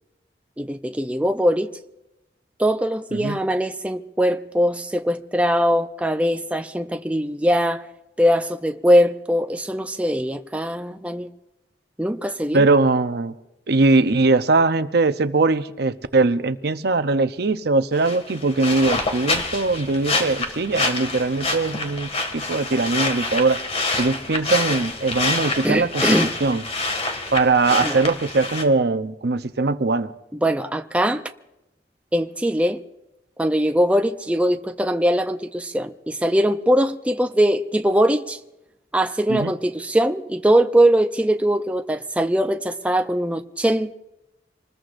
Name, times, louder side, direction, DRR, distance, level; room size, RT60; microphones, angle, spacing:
voice 1, 0.6-1.7 2.6-7.8 8.2-11.3 12.0-12.7 25.6-26.3 27.8-28.0 30.4-31.2 32.1-32.8 33.4-38.4 38.9-43.9, equal, 10° right, 0.5 m, -21 dB
voice 2, 12.5-13.3 13.7-23.6 24.0-26.0 26.4-26.6 27.3-30.1 39.3-39.5, right 3 dB, 60° right, 0.7 m, -21 dB
sound 1, 18.0-28.6, left 3 dB, 35° left, 2.0 m, -26 dB
26.0 x 20.5 x 2.6 m
head